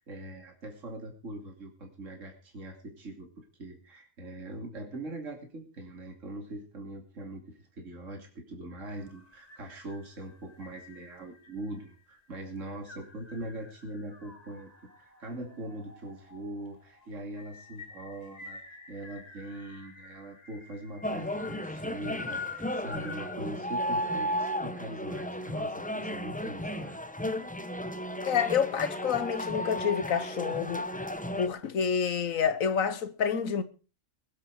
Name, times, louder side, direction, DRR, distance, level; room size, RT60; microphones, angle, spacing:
voice 1, 0.0-14.7 15.0-18.6 18.9-27.0, right 1 dB, 65° right, 2.9 m, -42 dB
sound 1, 8.8-23.4, left 4 dB, 30° left, 1.7 m, -47 dB
sound 2, 21.0-31.5, equal, 10° left, 0.6 m, -34 dB
voice 2, 28.2-30.9 31.4-33.6, left 7 dB, 75° left, 1.5 m, -28 dB
21.5 x 8.4 x 4.8 m
omnidirectional pair, 1.4 m